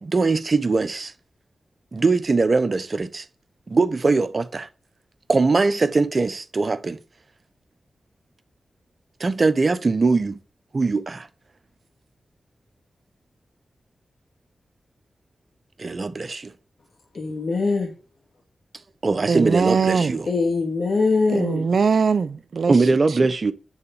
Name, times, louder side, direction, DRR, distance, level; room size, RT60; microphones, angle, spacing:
voice 1, 0.0-1.1 1.9-3.2 3.7-4.7 5.3-7.0 9.2-10.4 10.7-11.3 15.8-16.5 19.0-20.3 22.7-23.5, right 3 dB, 50° right, 0.9 m, -21 dB
voice 2, 17.1-17.9 20.3-21.6, left 3 dB, 70° left, 2.2 m, -22 dB
voice 3, 19.3-20.1 21.3-22.8, right 5 dB, 75° right, 0.6 m, -21 dB
9.8 x 4.0 x 7.1 m
cardioid pair, 40°, 0 cm